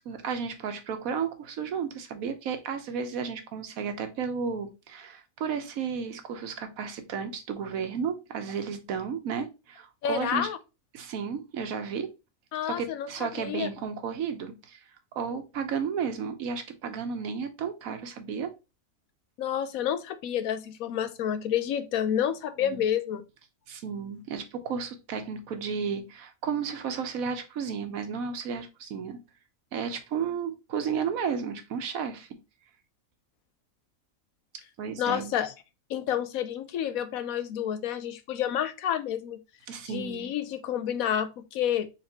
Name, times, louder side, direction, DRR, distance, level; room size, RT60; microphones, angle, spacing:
voice 1, 0.1-10.5 10.9-12.1 12.6-14.8 15.1-18.5 22.6-22.8 23.7-29.2 29.7-32.3 34.8-35.3 39.7-40.3, right 6 dB, 85° right, 1.2 m, -33 dB
voice 2, 10.0-10.6 12.5-13.1 13.4-13.7 19.4-23.2 35.0-35.5 35.9-39.4 39.9-41.9, left 9 dB, 90° left, 1.1 m, -29 dB
4.3 x 3.8 x 2.8 m
omnidirectional pair, 1.4 m